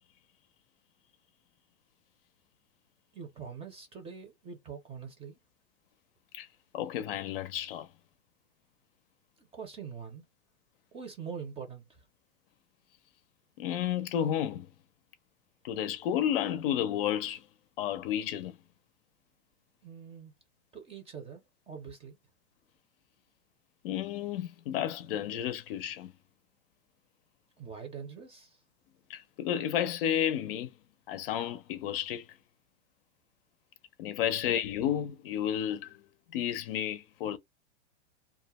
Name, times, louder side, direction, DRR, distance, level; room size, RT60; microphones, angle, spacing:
voice 1, 3.1-5.3 9.5-10.2 10.9-11.8 19.8-20.3 20.7-22.2 27.6-28.6, right 6 dB, 15° right, 0.6 m, -43 dB
voice 2, 6.7-7.9 13.6-14.7 15.6-17.4 17.8-18.5 23.8-26.1 29.1-30.7 31.1-32.2 34.0-36.0 36.3-37.4, left 10 dB, 55° left, 0.6 m, -31 dB
2.4 x 2.1 x 2.9 m
supercardioid pair, 140°, 34 cm